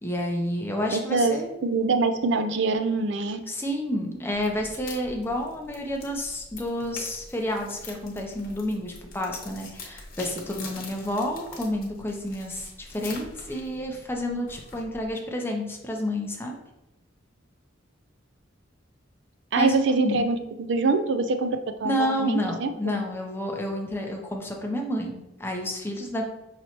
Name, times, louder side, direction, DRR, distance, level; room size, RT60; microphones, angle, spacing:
voice 1, 0.0-1.5 3.5-16.6 19.6-20.2 21.8-26.2, left 1 dB, 10° left, 1 dB, 0.5 m, -30 dB
voice 2, 0.9-1.4 1.6-3.4 19.5-23.0, right 3 dB, 65° right, 7 dB, 0.4 m, -24 dB
sound 1, 4.3-15.1, left 3 dB, 50° left, 1.0 m, -44 dB
5.6 x 3.0 x 2.9 m, 0.94 s
head